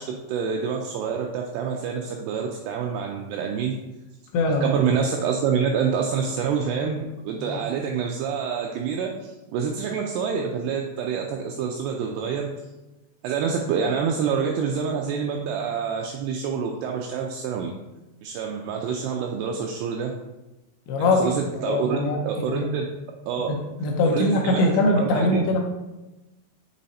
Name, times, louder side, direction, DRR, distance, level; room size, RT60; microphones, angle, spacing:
voice 1, 0.0-3.8 4.6-12.5 13.2-17.7 18.2-20.1 21.0-22.9 23.3-23.5 24.1-25.5, right 6 dB, 85° right, 1 dB, 2.3 m, -27 dB
voice 2, 4.3-4.7 7.4-7.6 20.9-22.6 23.5-25.6, left 2 dB, 80° left, 1 dB, 2.9 m, -23 dB
7.6 x 3.1 x 4.1 m, 1.0 s
omnidirectional pair, 5.2 m